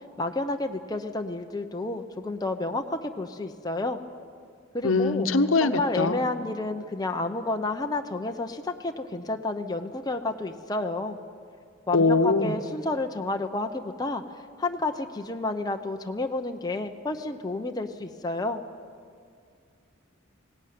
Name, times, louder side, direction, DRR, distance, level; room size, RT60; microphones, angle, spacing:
voice 1, 0.2-4.0 4.7-5.3 5.6-11.2 11.9-14.2 14.6-18.6, left 2 dB, 20° left, 4 dB, 0.8 m, -30 dB
voice 2, 4.8-6.2 11.9-12.6, left 3 dB, 80° left, 9 dB, 1.0 m, -22 dB
19.0 x 17.5 x 9.4 m, 2.3 s
head